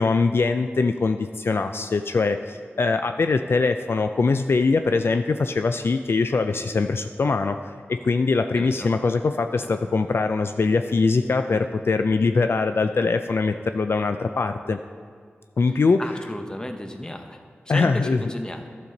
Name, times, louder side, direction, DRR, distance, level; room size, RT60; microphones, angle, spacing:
voice 1, 0.0-14.8 15.6-16.0 17.7-18.2, left 4 dB, 60° left, 8 dB, 0.3 m, -22 dB
voice 2, 8.5-8.9 16.0-17.4 17.7-18.7, left 1 dB, 15° left, 5 dB, 0.9 m, -33 dB
11.5 x 6.9 x 3.9 m, 2.1 s
cardioid pair, 50°, 4 cm